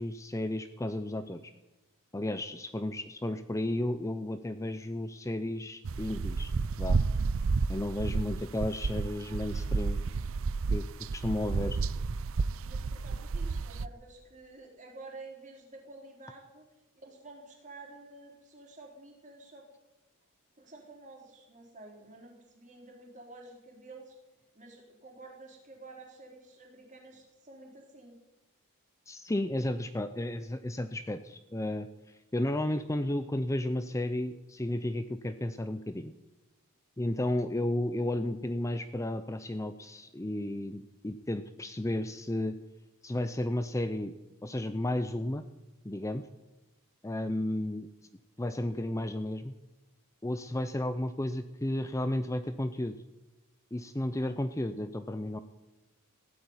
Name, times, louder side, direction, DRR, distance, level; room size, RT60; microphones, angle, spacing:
voice 1, 0.0-1.4 2.1-6.5 6.8-7.0 7.7-10.0 10.7-10.9 11.1-11.8 29.1-36.1 37.0-42.6 43.0-44.1 44.4-45.4 45.8-46.2 47.0-47.9 48.4-49.5 50.2-53.0 53.7-55.4, left 1 dB, 15° left, 10 dB, 0.6 m, -33 dB
sound 1, 5.8-13.9, right 4 dB, 65° right, 0.5 m, -31 dB
voice 2, 12.6-16.7 17.0-19.7 20.6-24.1 24.5-28.2 54.2-54.3, right 2 dB, 35° right, 0 dB, 4.0 m, -50 dB
16.0 x 8.7 x 9.7 m, 1.0 s
head